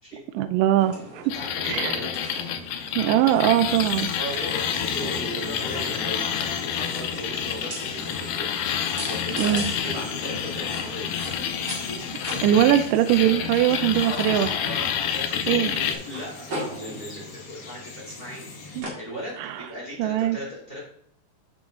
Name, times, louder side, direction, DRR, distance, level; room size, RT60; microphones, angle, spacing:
voice 1, 0.3-1.2 1.7-2.0 3.0-4.1 9.4-9.6 12.4-14.5 15.5-15.7 18.8-18.9 20.0-20.4, right 12 dB, 85° right, 9 dB, 2.2 m, -21 dB
sound 1, 0.8-19.7, right 1 dB, 35° right, 2.5 m, -40 dB
sound 2, 1.3-16.0, left 9 dB, 85° left, 2.3 m, -29 dB
voice 2, 1.3-2.1 4.0-11.1 11.7-12.0 13.2-18.5 18.7-20.8, equal, 15° left, -5 dB, 3.2 m, -38 dB
Bird vocalization bird call bird song, 2.7-18.8, left 3 dB, 50° left, 1.7 m, -42 dB
7.5 x 6.2 x 3.7 m, 0.68 s
omnidirectional pair, 3.7 m